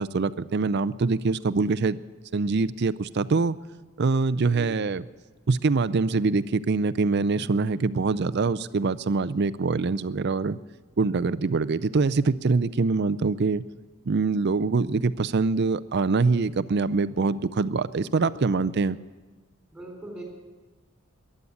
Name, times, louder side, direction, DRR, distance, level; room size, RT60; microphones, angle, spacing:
voice 1, 0.0-2.0 2.3-3.6 4.0-5.0 5.5-10.6 11.0-13.6 14.1-19.0, right 4 dB, 50° right, 16 dB, 0.5 m, -24 dB
voice 2, 4.3-4.8 17.9-18.7 19.7-20.2, equal, 5° right, 0 dB, 3.9 m, -42 dB
15.0 x 11.0 x 8.5 m, 1.3 s
head